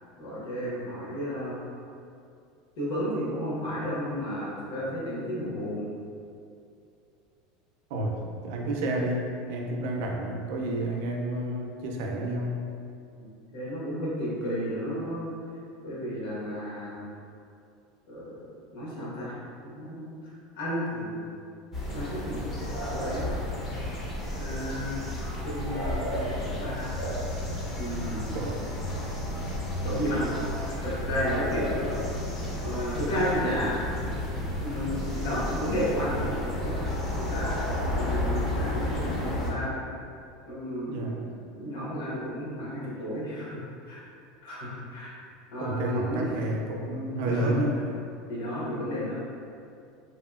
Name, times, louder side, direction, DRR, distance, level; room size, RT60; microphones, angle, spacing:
voice 1, 0.2-1.6 2.8-5.8 13.5-15.4 15.8-17.0 18.1-19.4 19.6-21.3 21.9-22.4 22.9-23.3 24.3-25.1 25.4-27.0 27.8-28.3 28.9-29.0 29.8-30.3 30.8-32.0 32.6-33.8 34.6-36.8 37.2-37.6 37.9-39.8 40.5-41.0 41.5-44.0 44.4-45.1 45.5-46.4 47.2-47.8 48.3-49.2, equal, 65° left, -8 dB, 1.0 m, -32 dB
voice 2, 7.9-12.6 28.3-28.6 40.9-41.3 45.6-47.8, right 1 dB, 60° right, 0 dB, 0.4 m, -30 dB
sound 1, 21.7-39.5, left 1 dB, 20° left, 0.4 m, -32 dB
2.7 x 2.6 x 2.4 m, 2.5 s
supercardioid pair, 170°, 0 cm